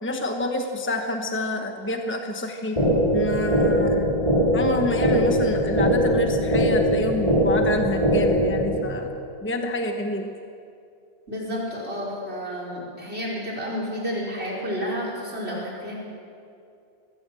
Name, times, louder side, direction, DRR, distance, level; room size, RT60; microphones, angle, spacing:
voice 1, 0.0-2.8 3.1-4.1 4.5-10.3, left 1 dB, 10° left, 4 dB, 1.1 m, -28 dB
sound 1, 2.8-8.8, equal, 35° left, 4.8 m, -21 dB
voice 2, 11.3-16.0, equal, 85° right, -4 dB, 5.4 m, -30 dB
22.0 x 16.0 x 7.7 m, 2.5 s
omnidirectional pair, 1.1 m